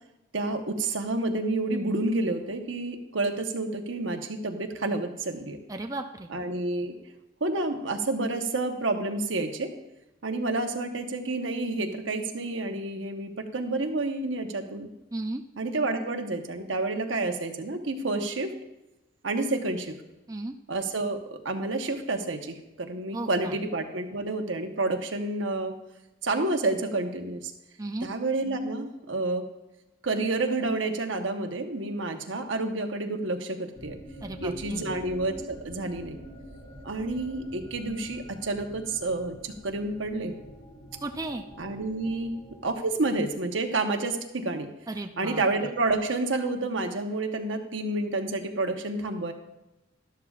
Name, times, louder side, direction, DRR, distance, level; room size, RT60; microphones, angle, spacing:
voice 1, 0.3-5.6 6.3-7.0 7.4-9.7 10.2-14.9 15.6-18.5 19.2-20.0 20.7-25.7 26.2-27.5 28.0-29.4 30.0-34.0 34.4-36.2 36.8-40.3 41.6-42.4 42.6-44.7 45.2-49.3, right 2 dB, 75° right, 5 dB, 1.1 m, -29 dB
voice 2, 5.7-6.3 15.1-15.4 20.3-20.6 23.1-23.6 27.8-28.1 34.2-35.0 41.0-41.4 44.9-45.4, right 2 dB, 20° right, 5 dB, 0.5 m, -35 dB
sound 1, 33.7-43.6, equal, 40° left, 2.1 m, -46 dB
12.5 x 12.5 x 2.4 m, 0.97 s
head